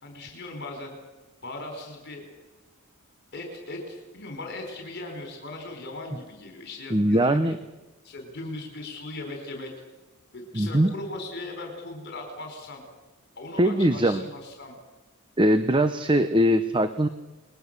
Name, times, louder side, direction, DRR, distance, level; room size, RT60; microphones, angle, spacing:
voice 1, 0.0-0.9 1.4-2.2 3.3-7.6 8.0-9.7 10.3-12.8 13.3-14.8, left 2 dB, 50° left, 4 dB, 4.6 m, -38 dB
voice 2, 6.9-7.6 10.5-10.9 13.6-14.3 15.4-17.1, right 1 dB, 20° right, 10 dB, 0.9 m, -21 dB
30.0 x 21.5 x 6.8 m, 1.1 s
head